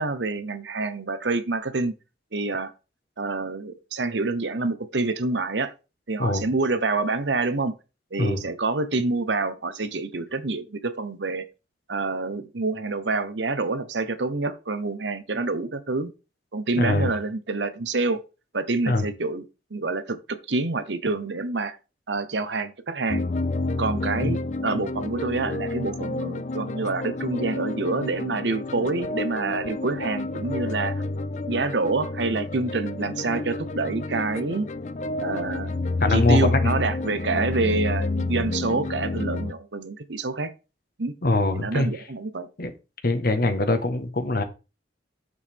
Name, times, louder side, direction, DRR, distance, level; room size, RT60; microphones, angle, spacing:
voice 1, 0.0-1.9 2.3-2.7 3.2-5.7 6.1-7.7 8.1-11.5 11.9-16.1 16.5-18.2 18.5-19.4 19.7-21.8 22.1-23.2 23.8-31.0 31.5-34.7 35.2-35.8 36.1-40.5 41.0-41.1 41.5-42.5, right 3 dB, 85° right, 1.0 m, -27 dB
voice 2, 16.8-17.1 18.9-19.1 24.2-24.3 36.0-36.7 41.2-41.9 42.6-42.7 43.0-44.4, left 2 dB, 60° left, 1.4 m, -23 dB
sound 1, 23.1-39.5, left 3 dB, 45° left, 0.4 m, -29 dB
8.3 x 7.2 x 3.6 m
head